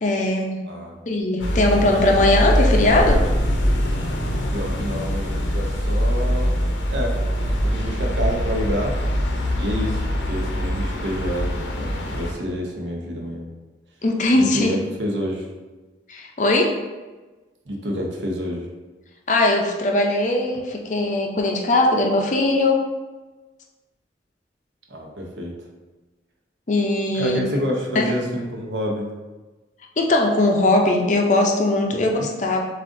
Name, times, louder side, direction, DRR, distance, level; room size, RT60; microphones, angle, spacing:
voice 1, 0.0-0.6 1.1-3.2 14.0-14.7 16.1-16.7 19.3-22.8 26.7-27.4 28.0-28.1 30.0-32.6, left 2 dB, 40° left, 1 dB, 0.5 m, -20 dB
voice 2, 0.7-1.0 1.7-2.0 4.5-7.2 7.6-9.0 9.6-10.0 10.3-13.5 14.4-15.5 17.7-18.7 24.9-25.5 27.1-29.1 31.9-32.3, equal, 75° right, 0 dB, 0.8 m, -28 dB
sound 1, 1.4-12.3, equal, 85° left, 0.7 m, -23 dB
7.2 x 2.5 x 2.5 m, 1.2 s
head